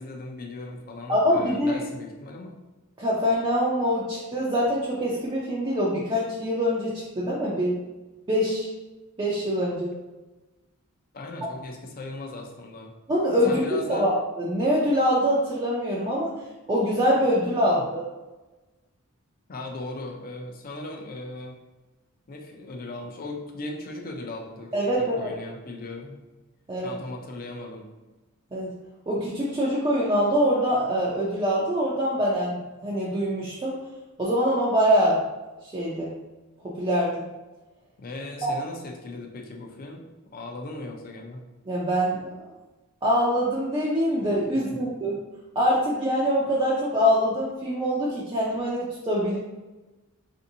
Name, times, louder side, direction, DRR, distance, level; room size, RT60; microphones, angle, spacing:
voice 1, 0.0-2.6 11.1-12.9 13.4-14.1 17.7-17.8 19.5-21.6 22.3-24.7 25.0-26.2 26.8-27.9 38.0-40.1 40.3-41.4 44.7-44.8, left 2 dB, 45° left, 2 dB, 0.5 m, -38 dB
voice 2, 1.1-1.8 3.0-7.8 8.3-8.7 9.2-10.0 13.1-14.1 14.4-16.3 16.7-18.1 24.7-25.3 26.7-26.9 28.5-28.7 29.1-33.8 34.2-35.2 35.6-36.2 36.6-37.3 38.4-38.5 41.7-42.5 43.0-45.2 45.6-49.4, equal, 20° right, -6 dB, 0.4 m, -24 dB
3.4 x 2.6 x 2.7 m, 1.1 s
head